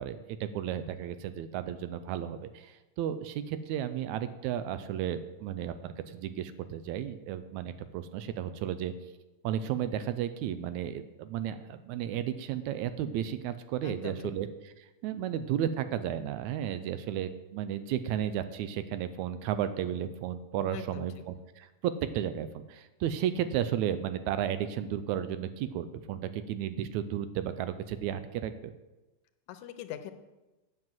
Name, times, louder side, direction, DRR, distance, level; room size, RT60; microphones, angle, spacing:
voice 1, 0.0-8.9 9.4-14.5 15.0-28.6, right 10 dB, 80° right, 12 dB, 1.9 m, -33 dB
voice 2, 13.8-14.2 20.7-21.1 29.5-30.1, left 11 dB, 85° left, 10 dB, 2.1 m, -41 dB
8.9 x 6.1 x 7.7 m, 1.1 s
omnidirectional pair, 3.5 m